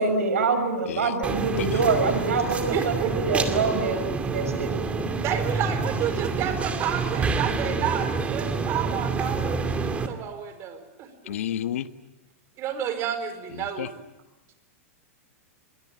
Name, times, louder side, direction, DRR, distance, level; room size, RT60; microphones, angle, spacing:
voice 1, 0.0-4.7, right 4 dB, 85° right, 9 dB, 6.1 m, -25 dB
sound 1, 1.2-10.1, right 4 dB, 15° right, 2.4 m, -27 dB
voice 2, 2.7-3.1 5.2-11.4 12.6-14.0, right 9 dB, 35° right, 9 dB, 4.6 m, -30 dB
voice 3, 11.3-11.9 13.5-13.9, left 11 dB, 75° left, 12 dB, 1.4 m, -31 dB
25.0 x 22.5 x 8.8 m, 1.0 s
hypercardioid pair, 130°, 8 cm